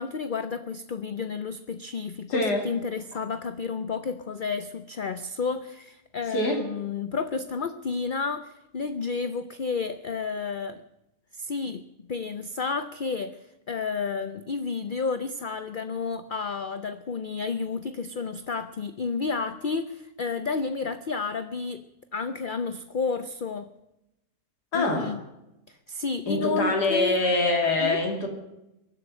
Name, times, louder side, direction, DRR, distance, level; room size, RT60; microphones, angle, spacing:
voice 1, 0.0-10.8 11.3-13.4 13.7-21.8 22.1-23.7 24.7-25.2 25.7-27.2 27.8-28.0, left 5 dB, 50° left, 11 dB, 0.6 m, -31 dB
voice 2, 2.3-2.7 6.3-6.6 24.7-25.1 26.3-28.3, left 2 dB, 85° left, 2 dB, 3.2 m, -24 dB
23.0 x 7.9 x 7.7 m, 0.90 s
omnidirectional pair, 1.7 m